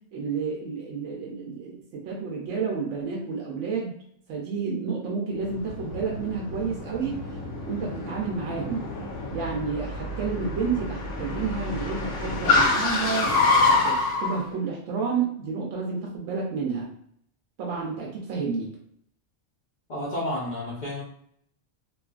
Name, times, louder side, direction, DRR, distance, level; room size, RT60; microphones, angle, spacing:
voice 1, 0.1-4.0 4.3-7.3 7.7-8.9 9.3-13.3 13.6-16.9 17.6-18.7, right 5 dB, 80° right, -2 dB, 0.9 m, -30 dB
Car, 5.4-14.4, left 3 dB, 85° left, 1.0 m, -27 dB
voice 2, 19.9-21.0, left 1 dB, 50° left, -4 dB, 0.6 m, -31 dB
2.6 x 2.4 x 2.3 m, 0.67 s
omnidirectional pair, 1.3 m